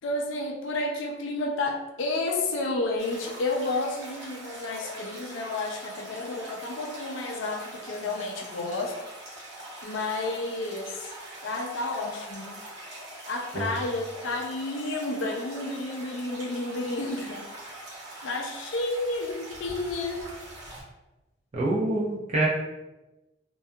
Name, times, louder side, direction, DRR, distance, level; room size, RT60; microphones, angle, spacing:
voice 1, 0.0-8.9 9.8-11.1 11.4-12.6 13.3-17.5 18.2-20.2, left 2 dB, 65° left, 2 dB, 0.4 m, -31 dB
sound 1, 3.0-20.8, right 1 dB, 60° right, 0.9 m, -43 dB
voice 2, 21.5-22.5, right 2 dB, 35° right, -4 dB, 0.4 m, -26 dB
2.3 x 2.2 x 2.6 m, 1.0 s
head